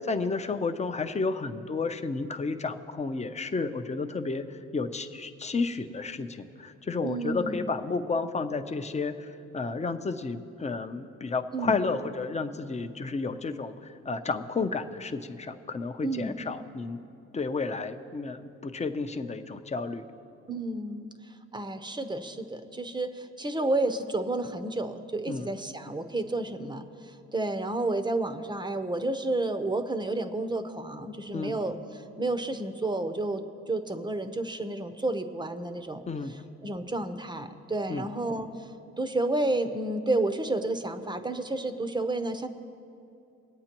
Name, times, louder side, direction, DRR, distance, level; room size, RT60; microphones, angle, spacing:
voice 1, 0.1-17.0 17.3-20.1 25.3-25.5 31.3-31.5 36.1-36.4 37.9-38.1, left 4 dB, 20° left, 8 dB, 0.6 m, -32 dB
voice 2, 7.0-7.7 11.5-11.7 16.0-16.4 20.5-21.1 21.5-36.0 36.6-38.7 39.0-42.5, right 2 dB, 15° right, 9 dB, 0.7 m, -31 dB
22.0 x 8.7 x 3.0 m, 2.6 s
cardioid pair, 90°, 30 cm